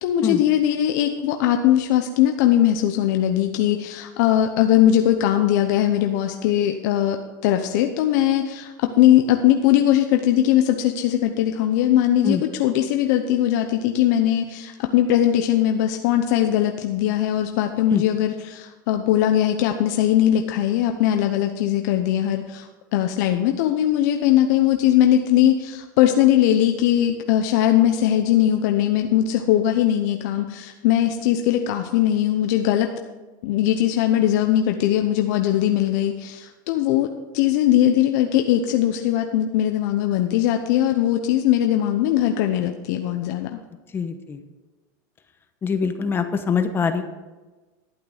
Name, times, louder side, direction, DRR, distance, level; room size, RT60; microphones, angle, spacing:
voice 1, 0.0-32.9 33.4-43.6, left 11 dB, 65° left, 5 dB, 0.8 m, -20 dB
voice 2, 43.9-44.4 45.6-47.0, left 6 dB, 20° left, 8 dB, 1.0 m, -23 dB
12.0 x 8.7 x 5.0 m, 1.2 s
supercardioid pair, 135°, 10 cm